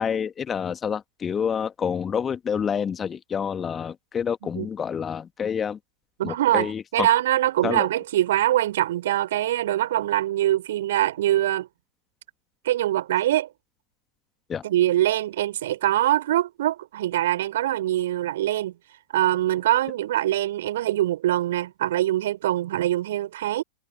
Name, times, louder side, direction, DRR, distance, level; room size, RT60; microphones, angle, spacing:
voice 1, 0.0-5.8 6.2-7.1 7.6-7.9 14.5-14.6, left 7 dB, 20° left, 1.9 m, -28 dB
voice 2, 6.2-11.7 12.6-13.5 14.6-18.8 19.1-23.6, right 13 dB, 55° right, 5.5 m, -23 dB
figure-of-eight pair, 90°, 0 cm